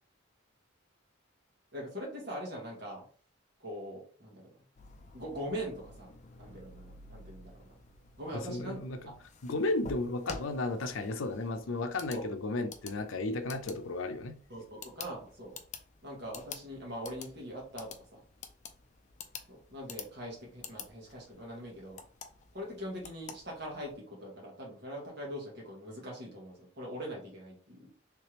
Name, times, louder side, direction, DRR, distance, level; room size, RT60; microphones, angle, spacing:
voice 1, 1.7-3.0 3.6-4.6 5.1-6.1 6.4-7.7 8.2-8.8 9.0-9.1 12.1-12.3 14.5-15.5 16.0-18.2 19.5-22.0 22.5-27.9, equal, 55° right, 1.6 m, -42 dB
sound 1, 4.8-23.9, left 5 dB, 35° left, 0.4 m, -50 dB
voice 2, 8.3-9.0 9.4-14.4, left 2 dB, 80° left, 0.6 m, -34 dB
3.4 x 3.3 x 3.0 m
head